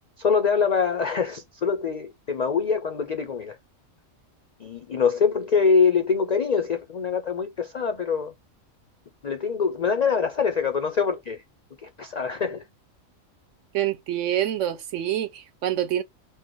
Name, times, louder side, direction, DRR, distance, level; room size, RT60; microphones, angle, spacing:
voice 1, 0.2-3.6 4.6-8.3 9.2-11.4 11.8-12.7, left 5 dB, 70° left, 0.4 m, -24 dB
voice 2, 13.7-16.0, right 11 dB, 70° right, 0.9 m, -26 dB
4.6 x 2.1 x 4.5 m
omnidirectional pair, 1.4 m